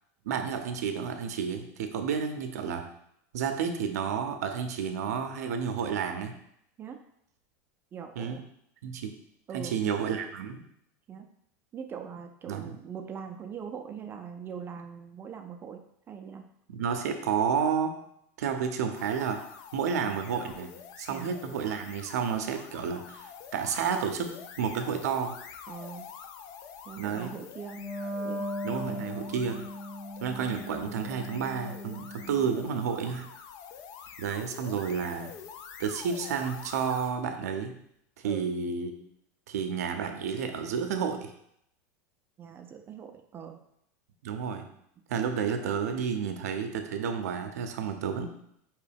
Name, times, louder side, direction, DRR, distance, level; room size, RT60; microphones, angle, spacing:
voice 1, 0.3-2.8 3.3-6.3 8.2-8.4 8.8-9.1 9.5-10.6 12.5-12.7 16.7-17.9 18.4-19.4 19.7-20.7 21.0-25.3 27.0-27.3 28.6-29.7 30.2-33.3 34.2-35.3 35.8-37.7 38.2-38.9 39.5-41.3 44.2-44.6 45.1-48.3, right 6 dB, 90° right, 6 dB, 0.5 m, -31 dB
voice 2, 7.9-8.4 9.5-9.8 11.1-11.3 11.7-16.5 21.1-21.3 25.7-26.1 26.8-27.9 28.2-28.5 34.0-34.1 38.2-38.5 42.4-43.6, right 7 dB, 25° right, 5 dB, 0.4 m, -42 dB
sound 1, 18.9-37.2, left 7 dB, 50° left, 0.4 m, -47 dB
Wind instrument woodwind instrument, 27.7-32.8, left 1 dB, 15° left, 1.1 m, -38 dB
4.6 x 3.0 x 3.4 m, 0.73 s
supercardioid pair, 125°, 8 cm